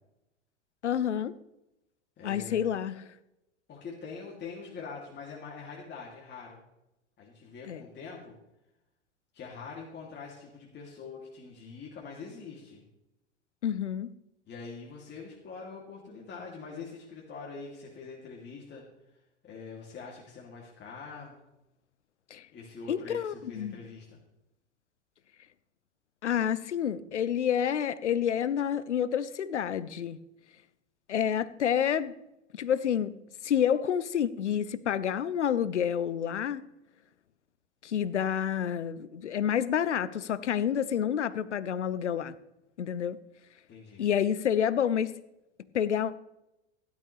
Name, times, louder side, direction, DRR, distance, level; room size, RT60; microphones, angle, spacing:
voice 1, 0.8-1.3 2.2-3.0 7.7-7.8 13.6-14.1 22.3-22.5 22.9-23.8 26.2-30.2 31.1-32.1 32.5-33.1 33.4-36.6 37.8-42.3 42.8-43.2 44.0-45.1 45.7-46.1, left 9 dB, 80° left, 16 dB, 0.8 m, -28 dB
voice 2, 2.2-2.7 3.7-6.6 7.2-8.3 9.3-12.8 14.5-18.8 19.4-21.4 22.5-24.2 43.7-44.1, left 5 dB, 30° left, -3 dB, 3.0 m, -44 dB
16.0 x 11.5 x 3.4 m, 0.89 s
figure-of-eight pair, 90°, 35 cm